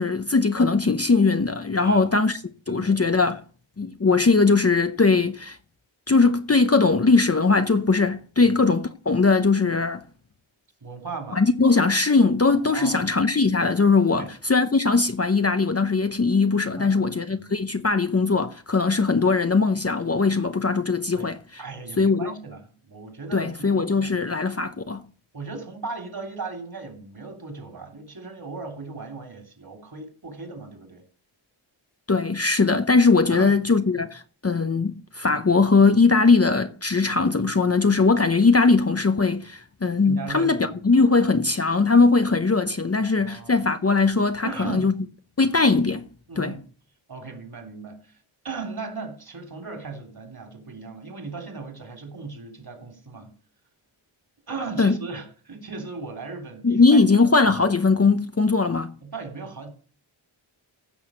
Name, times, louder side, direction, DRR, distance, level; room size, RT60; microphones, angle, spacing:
voice 1, 0.0-2.4 2.7-3.4 3.8-5.6 6.1-10.0 11.3-21.4 22.0-22.3 23.3-25.0 32.1-44.9 45.4-46.1 46.4-46.5 54.8-55.0 56.6-58.9, left 4 dB, 30° left, 0.7 m, -20 dB
voice 2, 2.7-3.0 8.4-8.6 10.8-11.4 12.7-13.0 14.1-14.3 16.8-17.0 17.3-17.5 21.1-21.3 21.6-24.1 25.3-31.0 33.3-33.6 34.0-34.1 40.0-40.9 43.0-43.6 44.4-44.9 46.3-46.6 47.1-48.2 48.4-53.3 54.5-57.0 59.0-59.7, right 4 dB, 45° right, 3.3 m, -37 dB
15.5 x 6.3 x 6.3 m
wide cardioid pair, 110°, 49 cm